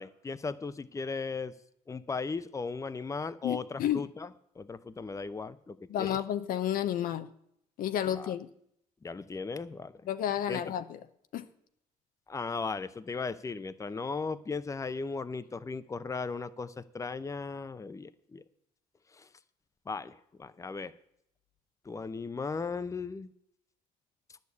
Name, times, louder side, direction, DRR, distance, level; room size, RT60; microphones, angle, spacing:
voice 1, 0.0-1.5 1.9-4.3 4.6-6.2 8.1-8.3 9.0-9.9 10.5-10.6 12.3-18.4 19.1-19.3 19.9-20.9 21.8-23.3, left 4 dB, 20° left, 13 dB, 0.6 m, -37 dB
voice 2, 3.4-4.0 5.9-7.3 7.8-8.5 10.1-11.0 11.3-11.5, left 11 dB, 75° left, 11 dB, 0.7 m, -31 dB
10.5 x 6.5 x 8.3 m, 0.73 s
cardioid pair, 85°, 15 cm